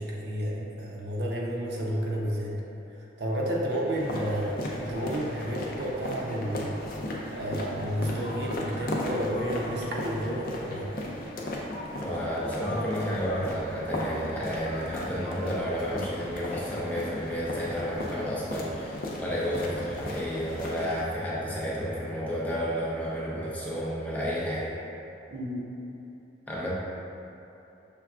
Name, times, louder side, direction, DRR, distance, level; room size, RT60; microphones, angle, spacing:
voice 1, 0.0-2.6 3.2-6.7 7.3-11.0 25.3-25.6, equal, 65° right, -3 dB, 0.6 m, -31 dB
sound 1, 4.0-21.0, left 1 dB, 50° left, 0.5 m, -36 dB
voice 2, 12.0-24.7 26.5-26.7, equal, 10° left, -7 dB, 0.6 m, -31 dB
6.0 x 3.4 x 2.3 m, 3.0 s
head